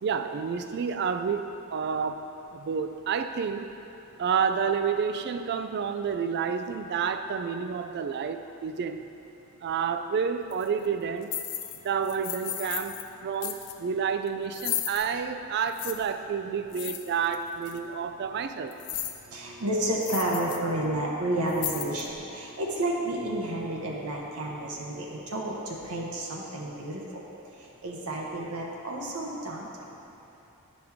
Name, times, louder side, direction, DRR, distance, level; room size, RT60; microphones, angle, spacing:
voice 1, 0.0-3.7 4.2-9.0 9.6-11.3 11.8-13.0 13.2-18.7, right 6 dB, 50° right, 8 dB, 0.3 m, -29 dB
sound 1, 10.5-10.7 11.2-11.8 12.0-13.1 13.4-13.7 14.5-15.1 15.7-15.9 16.7-17.4 17.7-17.8 18.7-19.2 19.6-19.7 20.0-20.6 20.9-21.0 21.5-22.1, left 11 dB, 90° left, 0.5 m, -34 dB
voice 2, 19.3-27.2 27.8-29.9, right 1 dB, 85° right, -3 dB, 1.0 m, -31 dB
10.0 x 5.1 x 3.6 m, 2.9 s
head